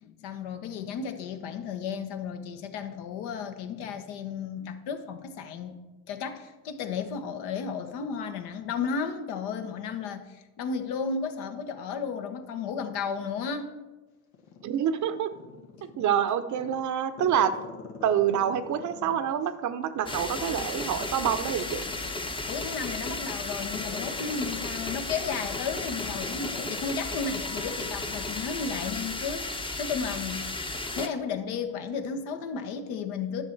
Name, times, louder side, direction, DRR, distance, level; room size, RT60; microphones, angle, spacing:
voice 1, 0.0-5.8 6.1-13.7 22.5-30.5 31.0-33.4, left 5 dB, 70° left, 7 dB, 1.1 m, -33 dB
Growling, 14.3-16.1 16.5-19.5 19.9-26.8 27.1-27.2, left 5 dB, 90° left, 1.3 m, -44 dB
voice 2, 14.6-15.3 16.0-17.6 18.0-21.9, right 9 dB, 45° right, 11 dB, 0.7 m, -27 dB
sound 1, 20.1-31.1, left 2 dB, 10° left, 0.7 m, -34 dB
10.5 x 6.0 x 4.5 m, 1.2 s
supercardioid pair, 95°, 41 cm